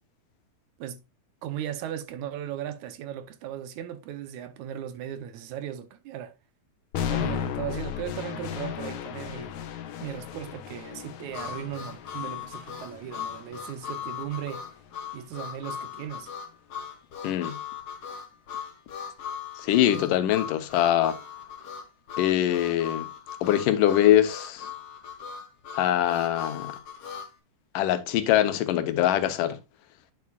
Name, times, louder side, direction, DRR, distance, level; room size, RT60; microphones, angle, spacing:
voice 1, 1.4-6.3 7.1-9.6 10.0-14.7 15.1-16.3, right 10 dB, 75° right, 2.1 m, -37 dB
sound 1, 6.9-15.0, left 9 dB, 70° left, 2.2 m, -35 dB
Harmonica, 11.3-27.3, left 8 dB, 55° left, 2.3 m, -39 dB
voice 2, 17.2-17.6 19.6-21.2 22.2-23.1 23.4-24.7 25.7-26.8 27.7-29.6, left 12 dB, 85° left, 2.5 m, -23 dB
9.3 x 7.1 x 2.4 m
omnidirectional pair, 3.7 m